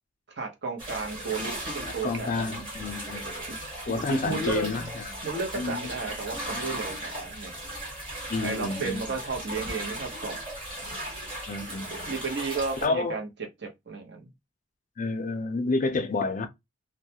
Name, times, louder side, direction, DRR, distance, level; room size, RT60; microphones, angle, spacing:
voice 1, 0.4-2.7 3.5-3.7 4.1-4.9 5.2-7.5 8.4-10.4 12.1-13.3 13.6-14.3, right 4 dB, 60° right, 0.8 m, -33 dB
sound 1, 0.8-12.9, right 1 dB, 25° right, 1.2 m, -37 dB
voice 2, 1.8-3.2 3.9-5.0 5.5-5.9 8.3-9.0 11.5-12.1 12.8-13.2 15.0-16.5, left 3 dB, 40° left, 0.4 m, -29 dB
2.3 x 2.1 x 2.7 m
head